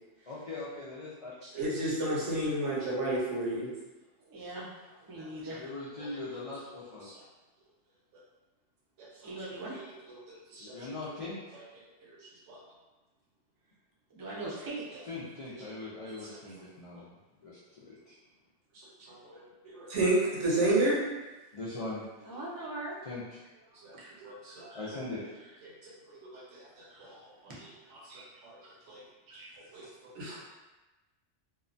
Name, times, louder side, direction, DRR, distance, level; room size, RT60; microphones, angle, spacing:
voice 1, 0.3-1.3 5.5-7.1 10.6-11.6 15.1-17.0 17.4-18.2 21.5-22.2 23.1-23.4 24.2-25.2 29.3-29.4, left 2 dB, 65° left, -8 dB, 0.3 m, -41 dB
voice 2, 1.5-3.7 5.2-5.3 7.0-7.1 9.0-9.1 9.7-9.9 10.3-10.7 12.5-12.6 14.3-14.4 16.2-16.3 18.7-19.4 19.8-21.0 23.8-23.9 24.2-24.7 25.6-27.2 28.1-28.5 28.9-29.0 29.7-29.8 30.1-30.4, right 1 dB, 75° right, -4 dB, 1.1 m, -32 dB
voice 3, 4.3-4.7 5.1-5.6 9.2-9.7 14.1-15.0 22.3-23.0 23.9-24.1 26.9-27.1 27.5-28.2 29.3-29.5 29.8-29.9, right 2 dB, 30° right, -6 dB, 0.4 m, -41 dB
2.7 x 2.1 x 2.5 m, 1.1 s
omnidirectional pair, 1.2 m